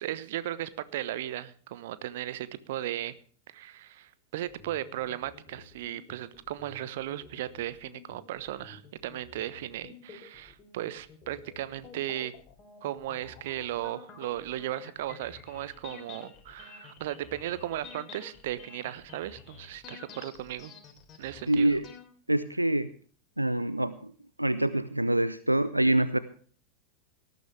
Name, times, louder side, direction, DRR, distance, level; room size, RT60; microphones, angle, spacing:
voice 1, 0.0-3.1 3.5-12.3 12.8-20.7 21.2-21.8, right 13 dB, 55° right, 16 dB, 1.0 m, -36 dB
sound 1, 4.5-22.0, left 6 dB, 30° left, 3.3 m, -50 dB
voice 2, 21.5-21.8 22.3-22.9 23.4-24.1 24.4-26.2, right 1 dB, 85° right, 14 dB, 0.7 m, -25 dB
18.5 x 13.5 x 3.3 m, 0.43 s
figure-of-eight pair, 90°, 0 cm